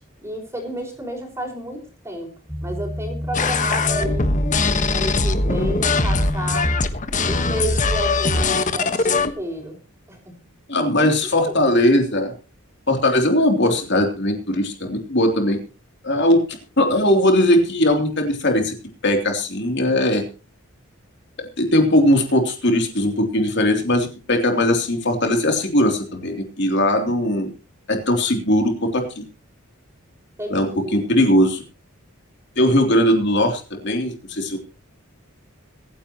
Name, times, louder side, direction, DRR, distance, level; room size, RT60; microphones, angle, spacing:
voice 1, 0.0-2.3 2.6-4.3 4.9-6.7 7.2-9.8 10.1-10.4 11.0-11.1 11.4-11.9 30.4-31.1, right 1 dB, 15° right, 2 dB, 5.5 m, -31 dB
sound 1, 2.5-6.7, left 1 dB, 5° left, 1.7 m, -29 dB
sound 2, 3.3-9.3, left 3 dB, 35° left, 1.4 m, -21 dB
voice 2, 10.7-12.3 12.9-15.6 16.0-16.4 16.8-18.7 19.0-20.2 21.6-27.5 27.9-29.2 30.5-31.6 32.6-34.6, left 1 dB, 55° left, 4 dB, 3.2 m, -19 dB
25.5 x 10.0 x 3.0 m, 0.34 s
head